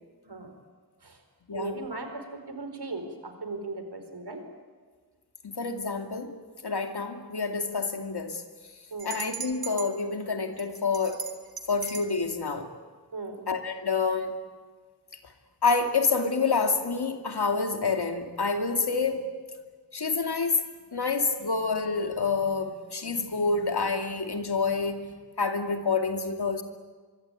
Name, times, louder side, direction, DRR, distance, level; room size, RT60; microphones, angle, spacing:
voice 1, 1.5-4.4 8.9-9.2 13.1-13.4 19.3-19.4 21.3-21.5, right 3 dB, 90° right, 6 dB, 4.4 m, -37 dB
voice 2, 5.4-6.4 6.6-8.4 9.0-11.2 11.7-12.7 13.5-14.4 15.6-19.3 19.9-20.6 20.9-25.1 25.4-26.6, left 4 dB, 80° left, 5 dB, 2.6 m, -28 dB
sound 1, 9.0-9.9 10.6-12.1, right 6 dB, 65° right, 2.9 m, -38 dB
25.0 x 23.5 x 9.3 m, 1.5 s
wide cardioid pair, 70°, 38 cm